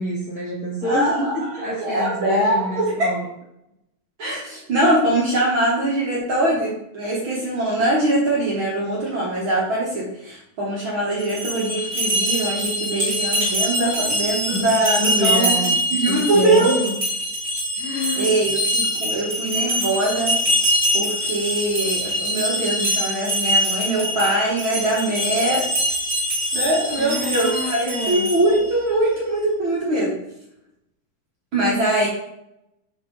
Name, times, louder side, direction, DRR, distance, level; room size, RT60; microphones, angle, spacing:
voice 1, 0.0-3.3 14.5-16.9 17.8-18.4 27.0-28.3, left 1 dB, 70° left, -5 dB, 0.9 m, -27 dB
voice 2, 0.8-3.1 4.2-15.5 15.9-16.7 17.8-20.3 20.9-25.7 26.5-30.2 31.5-32.1, right 1 dB, 55° right, -5 dB, 1.5 m, -22 dB
sound 1, 11.2-28.6, equal, 20° right, 1.5 m, -24 dB
7.2 x 3.6 x 3.7 m, 0.81 s
omnidirectional pair, 3.7 m